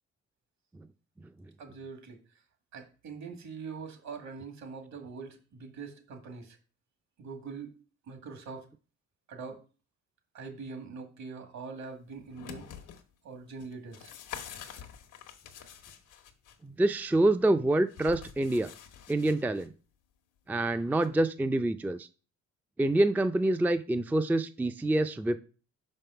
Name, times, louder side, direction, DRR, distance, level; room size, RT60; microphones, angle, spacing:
voice 1, 1.6-2.2 2.7-6.6 7.2-7.7 8.1-8.7 9.3-9.6 10.3-12.7 13.2-14.1, right 5 dB, 65° right, 5 dB, 2.1 m, -43 dB
sound 1, 12.1-13.0 13.6-16.6 17.9-19.7 21.0-21.1, left 9 dB, 85° left, 1.1 m, -46 dB
voice 2, 16.6-18.7 19.1-19.7 20.5-22.1 22.8-25.4, right 1 dB, 5° right, 10 dB, 0.4 m, -26 dB
5.7 x 5.4 x 5.6 m, 0.37 s
cardioid pair, 90°, 30 cm